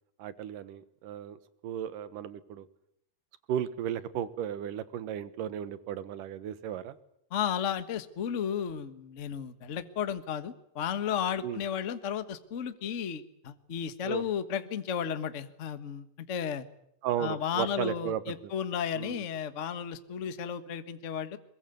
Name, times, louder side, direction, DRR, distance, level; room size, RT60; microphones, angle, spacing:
voice 1, 0.2-2.7 3.5-7.0 11.4-11.6 14.0-14.2 17.0-18.4 19.0-19.2, right 10 dB, 85° right, 14 dB, 2.9 m, -35 dB
voice 2, 7.3-16.6 17.2-21.4, left 8 dB, 70° left, 11 dB, 0.7 m, -33 dB
23.0 x 22.0 x 9.3 m, 0.74 s
omnidirectional pair, 3.7 m